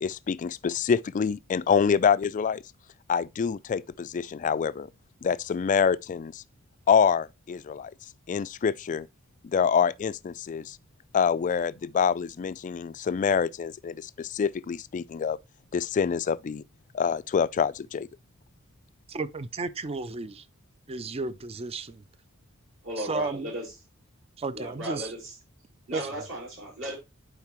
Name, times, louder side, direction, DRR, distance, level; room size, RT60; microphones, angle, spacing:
voice 1, 0.0-2.6 3.1-4.9 5.2-6.4 6.9-7.9 8.3-9.1 9.4-10.8 11.1-15.4 15.7-16.6 16.9-18.1, left 6 dB, 35° left, 0.3 m, -26 dB
voice 2, 19.1-20.5 20.9-22.0 23.0-23.5 24.4-25.1 25.9-26.3, right 3 dB, 30° right, 0.4 m, -33 dB
voice 3, 22.8-23.7 24.5-25.3 25.9-27.0, right 1 dB, 60° right, 5.3 m, -35 dB
10.5 x 4.7 x 3.0 m
head